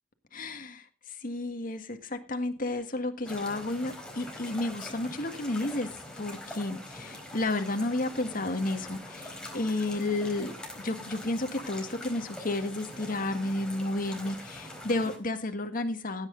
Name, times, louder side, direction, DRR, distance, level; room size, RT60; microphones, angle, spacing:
voice 1, 0.3-5.9 6.2-16.3, left 2 dB, 50° left, 7 dB, 1.7 m, -32 dB
sound 1, 3.2-15.2, left 1 dB, 5° left, 4.4 m, -43 dB
16.0 x 9.0 x 3.9 m, 0.30 s
head